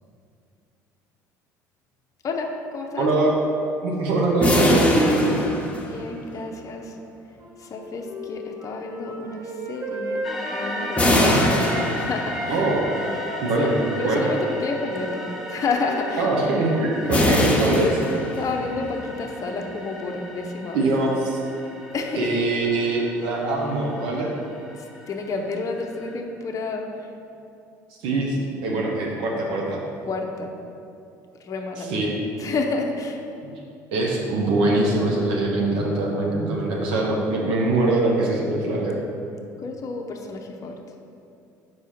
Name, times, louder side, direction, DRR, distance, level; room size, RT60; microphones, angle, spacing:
voice 1, 2.2-3.1 5.7-7.0 7.6-10.2 10.5-11.2 12.0-12.7 13.6-15.2 15.5-16.3 17.1-17.2 18.4-20.9 21.9-22.3 24.8-26.9 30.1-30.5 31.4-32.0 32.4-33.2 39.6-40.8, left 3 dB, 35° left, 2 dB, 0.7 m, -30 dB
voice 2, 3.0-3.4 3.8-5.4 11.1-11.5 12.5-12.8 13.4-13.8 14.0-14.2 16.2-18.0 20.7-21.4 22.2-24.3 28.0-29.8 31.9-32.1 33.9-39.0, right 2 dB, 65° right, -2 dB, 1.1 m, -23 dB
sound 1, 4.4-6.3 11.0-12.6 17.1-18.7, left 1 dB, 15° left, 1.1 m, -22 dB
Wind instrument woodwind instrument, 7.4-11.9 12.2-16.7, equal, 40° right, 1.5 m, -34 dB
sound 2, 10.2-26.2, left 1 dB, ahead, 1.3 m, -37 dB
4.8 x 4.7 x 5.7 m, 2.5 s
hypercardioid pair, 65°, 9 cm